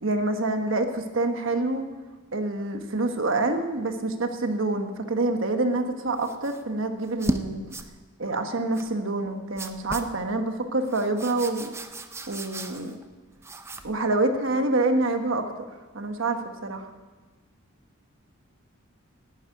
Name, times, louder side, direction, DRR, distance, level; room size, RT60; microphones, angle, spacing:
voice 1, 0.0-1.9 2.3-7.6 8.2-11.7 12.3-12.9 13.8-15.7 15.9-16.9, right 2 dB, 65° right, 6 dB, 1.3 m, -26 dB
sound 1, 6.2-6.6 7.0-7.4 7.7-7.9 8.7-8.9 9.6-10.1 10.9-13.0 13.4-14.0, right 1 dB, 10° right, 0.6 m, -35 dB
11.5 x 9.2 x 9.1 m, 1.3 s
head